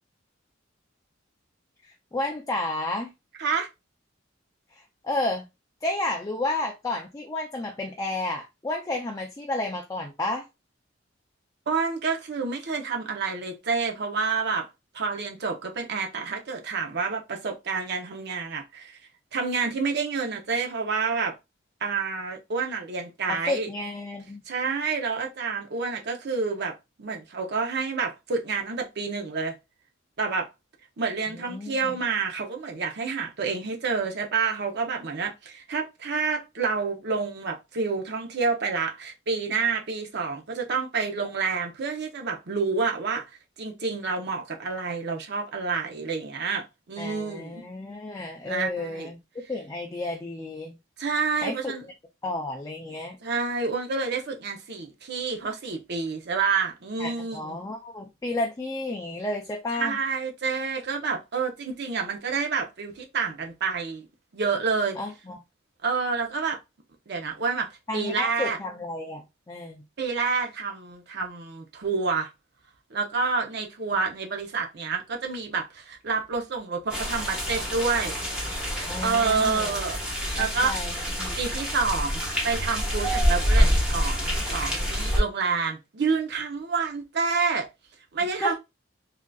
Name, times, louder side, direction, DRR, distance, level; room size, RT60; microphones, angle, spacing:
voice 1, 1.8-3.1 4.7-5.4 5.8-10.5 23.3-24.4 31.3-32.0 47.0-50.7 51.4-51.7 52.2-53.2 57.0-60.0 65.0-65.4 67.9-69.8 78.9-79.7 80.4-81.3 88.4-88.5, left 2 dB, 15° left, 0.4 m, -32 dB
voice 2, 11.7-14.7 14.9-19.0 19.3-21.3 21.8-23.7 24.5-29.6 30.2-30.5 31.0-43.2 43.6-47.6 48.5-49.1 51.0-51.8 53.2-57.6 59.7-64.1 64.3-65.0 65.8-66.6 67.1-67.7 67.9-68.6 70.0-72.3 72.9-78.1 79.0-80.7 81.4-87.7 88.1-88.5, right 4 dB, 60° right, 0.7 m, -28 dB
sound 1, 76.9-85.2, equal, 5° right, 1.0 m, -26 dB
3.7 x 2.5 x 2.2 m
head